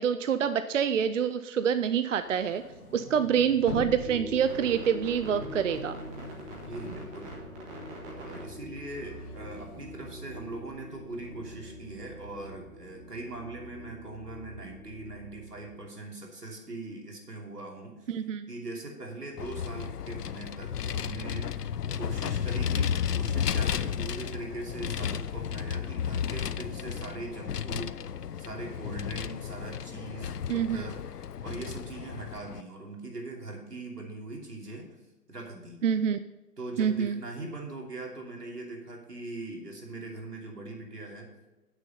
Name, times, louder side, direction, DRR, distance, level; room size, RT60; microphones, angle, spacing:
voice 1, 0.0-2.6 2.9-6.0 18.1-18.5 30.5-30.9 35.8-36.2 36.8-37.2, right 8 dB, 55° right, 11 dB, 0.5 m, -26 dB
sound 1, 1.9-8.0 8.3-11.6, left 2 dB, 70° left, 1.7 m, -45 dB
sound 2, 4.0-15.8, equal, 15° right, 1.5 m, -43 dB
voice 2, 6.6-7.4 8.1-18.1 18.5-28.0 28.4-34.9 35.3-35.8 36.6-41.3, right 2 dB, 85° right, 0 dB, 3.0 m, -41 dB
Vehicle, 19.4-32.6, left 8 dB, 85° left, 0.6 m, -33 dB
9.0 x 6.5 x 5.4 m, 1.1 s
figure-of-eight pair, 140°, 46 cm